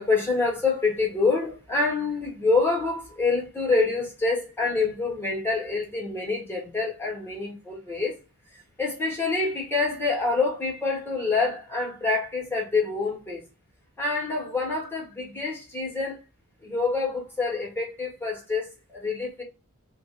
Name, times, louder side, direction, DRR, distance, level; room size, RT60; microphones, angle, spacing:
voice 1, 0.0-8.1 8.8-13.4 14.0-16.2 16.6-19.4, left 3 dB, 10° left, 1.4 m, -26 dB
2.8 x 2.6 x 3.7 m
head